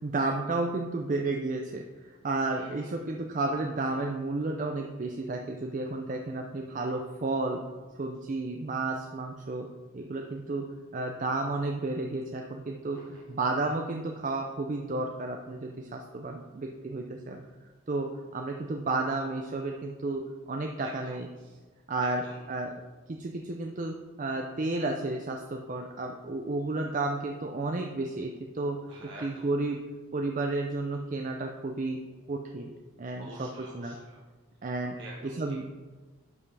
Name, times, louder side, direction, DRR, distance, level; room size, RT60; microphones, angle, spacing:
voice 1, 0.0-7.6 8.0-9.7 9.9-17.4 17.9-21.3 21.9-22.2 22.5-22.7 23.1-29.8 30.1-32.7 33.0-34.0 34.6-35.0 35.4-35.7, right 2 dB, 40° right, 2 dB, 0.4 m, -32 dB
voice 2, 2.6-3.0 12.9-13.4 20.8-21.6 22.0-22.4 28.9-29.5 33.2-34.2 34.9-35.7, right 1 dB, 60° right, -4 dB, 1.0 m, -48 dB
10.5 x 5.5 x 3.3 m, 1.3 s
head